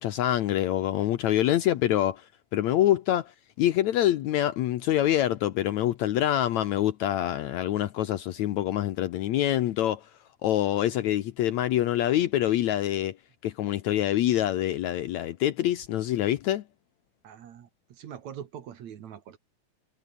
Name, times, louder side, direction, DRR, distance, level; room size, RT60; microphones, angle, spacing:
voice 1, 0.0-2.2 2.5-3.3 3.6-10.0 10.4-13.1 13.4-16.6, left 12 dB, 70° left, 1.9 m, -25 dB
voice 2, 17.2-19.4, right 9 dB, 60° right, 2.7 m, -43 dB
omnidirectional pair, 3.9 m